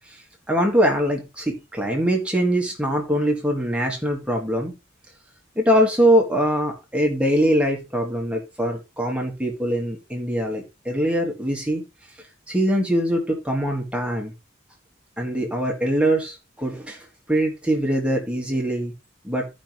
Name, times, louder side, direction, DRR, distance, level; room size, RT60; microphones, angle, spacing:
voice 1, 0.5-4.7 5.6-11.8 12.5-14.3 15.2-18.9 19.2-19.5, equal, 5° right, 1 dB, 1.7 m, -22 dB
14.5 x 5.3 x 3.0 m, 0.25 s
head